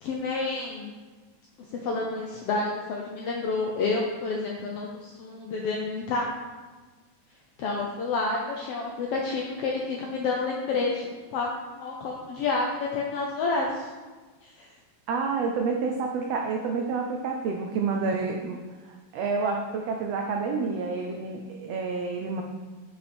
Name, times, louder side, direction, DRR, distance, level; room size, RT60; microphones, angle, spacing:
voice 1, 0.0-0.9 1.7-6.3 7.6-13.9 14.4-14.7, left 3 dB, 80° left, -1 dB, 1.3 m, -29 dB
voice 2, 15.1-18.6 18.8-22.4, right 4 dB, 90° right, 3 dB, 1.4 m, -29 dB
9.8 x 5.7 x 4.4 m, 1.4 s
omnidirectional pair, 3.7 m